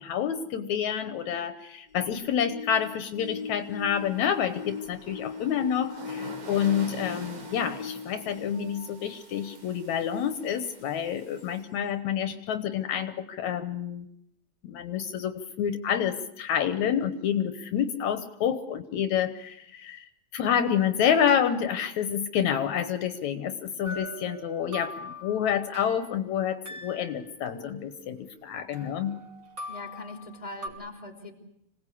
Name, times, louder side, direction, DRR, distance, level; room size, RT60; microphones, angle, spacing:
voice 1, 0.0-14.1 14.6-29.2, left 8 dB, 75° left, 9 dB, 2.4 m, -28 dB
sound 1, 1.9-9.6 10.3-10.4 11.4-11.5, left 6 dB, 40° left, 2.1 m, -40 dB
sound 2, 2.7-11.6, right 3 dB, 75° right, 4.3 m, -47 dB
sound 3, 23.8-26.1 26.6-28.4 28.7-30.7, equal, 30° right, 3.7 m, -42 dB
voice 2, 29.7-31.3, left 2 dB, 10° left, 4 dB, 3.3 m, -41 dB
26.5 x 18.5 x 8.5 m, 0.78 s
omnidirectional pair, 3.4 m